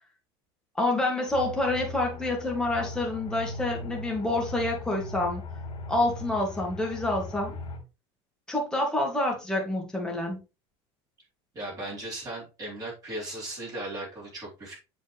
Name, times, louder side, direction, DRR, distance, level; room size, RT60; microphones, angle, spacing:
voice 1, 0.8-5.4 5.9-7.6 8.5-10.4, left 2 dB, 5° left, 2.3 m, -27 dB
Aircraft, 1.3-7.8, left 2 dB, 40° left, 2.8 m, -39 dB
voice 2, 11.5-14.7, right 1 dB, 25° right, 3.8 m, -37 dB
7.7 x 4.4 x 3.2 m
supercardioid pair, 130°, 14 cm